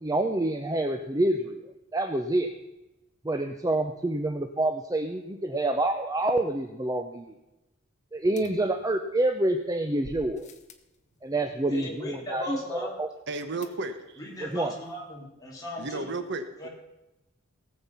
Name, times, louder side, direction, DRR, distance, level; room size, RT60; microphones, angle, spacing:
voice 1, 0.0-2.5 3.2-7.3 8.1-10.5 11.2-13.1 14.4-14.7, right 1 dB, 15° right, 6 dB, 0.6 m, -27 dB
sound 1, 8.4-9.3 10.0-11.0 13.6-14.2 14.5-14.6 14.8-14.9, left 2 dB, 35° left, 1.0 m, -49 dB
voice 2, 11.7-12.9 14.2-16.1 16.6-16.7, left 1 dB, 15° left, -3 dB, 3.8 m, -37 dB
voice 3, 13.3-14.2 15.8-16.5, right 3 dB, 60° right, 9 dB, 0.9 m, -33 dB
18.0 x 7.7 x 5.6 m, 0.97 s
head